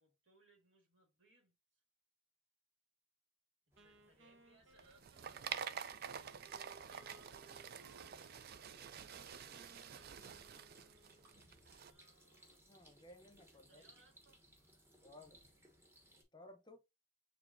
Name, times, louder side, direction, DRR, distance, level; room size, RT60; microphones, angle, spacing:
voice 1, 0.0-1.8 3.7-7.8 11.8-12.7 13.5-14.5, right 3 dB, 70° right, 2.0 m, -71 dB
sound 1, 3.7-16.2, equal, 15° right, 1.0 m, -67 dB
Wind instrument woodwind instrument, 3.8-11.7, right 2 dB, 85° right, 0.9 m, -66 dB
sound 2, 4.7-11.9, right 7 dB, 50° right, 0.4 m, -48 dB
voice 2, 12.7-13.8 15.0-15.4 16.3-16.8, left 1 dB, 20° left, 0.8 m, -58 dB
7.0 x 2.7 x 2.6 m
head